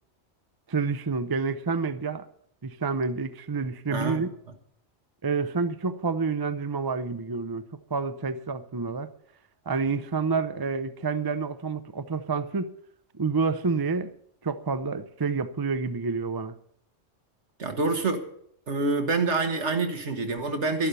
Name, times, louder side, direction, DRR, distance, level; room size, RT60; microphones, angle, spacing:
voice 1, 0.7-2.3 2.6-4.3 5.2-7.6 7.9-9.1 9.7-12.7 13.1-14.1 14.4-16.6, right 4 dB, 25° right, 0.5 m, -28 dB
voice 2, 17.6-18.2 18.7-20.9, right 3 dB, 65° right, 1.9 m, -26 dB
12.0 x 11.5 x 6.8 m
omnidirectional pair, 1.3 m